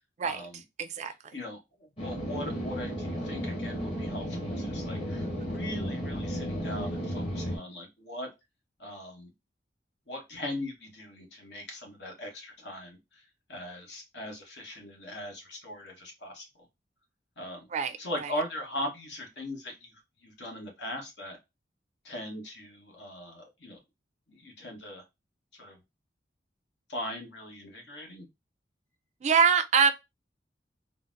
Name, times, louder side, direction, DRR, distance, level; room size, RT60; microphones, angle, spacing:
voice 1, 0.2-0.6 1.3-1.6 2.0-8.3 8.8-9.3 10.1-13.0 13.5-16.4 17.4-17.7 18.0-19.9 20.2-21.4 22.0-23.8 24.4-25.0 25.6-25.8 26.9-28.2, left 1 dB, 80° left, 1.1 m, -39 dB
voice 2, 0.8-1.1 17.7-18.3 29.2-29.9, right 6 dB, 40° right, 0.3 m, -24 dB
sound 1, 2.0-7.6, equal, 35° left, 1.1 m, -34 dB
3.8 x 2.0 x 2.5 m
head